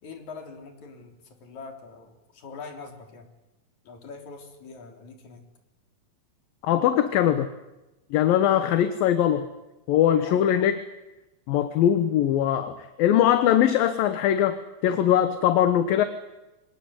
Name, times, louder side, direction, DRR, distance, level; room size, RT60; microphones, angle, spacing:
voice 1, 0.0-3.3 3.8-5.4 10.2-10.7, left 4 dB, 50° left, 4 dB, 4.7 m, -43 dB
voice 2, 6.6-7.5 8.1-9.5 9.9-10.7 11.5-14.6 14.8-16.1, left 10 dB, 75° left, 10 dB, 2.9 m, -21 dB
26.0 x 19.5 x 9.7 m, 1.0 s
omnidirectional pair, 4.3 m